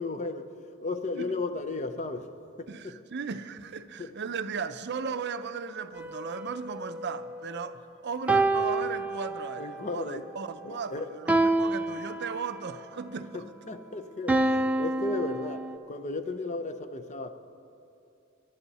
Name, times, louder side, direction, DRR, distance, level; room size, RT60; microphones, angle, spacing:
voice 1, 0.0-2.3 2.6-3.0 4.0-4.1 9.6-10.3 10.6-11.2 13.3-17.3, left 3 dB, 35° left, 0.7 m, -35 dB
voice 2, 2.7-7.8 8.0-13.3, right 5 dB, 55° right, 0.6 m, -36 dB
sound 1, 6.0-7.7 8.3-9.7 11.3-12.7 14.3-15.8, right 2 dB, 5° right, 0.5 m, -28 dB
27.5 x 11.5 x 4.2 m
head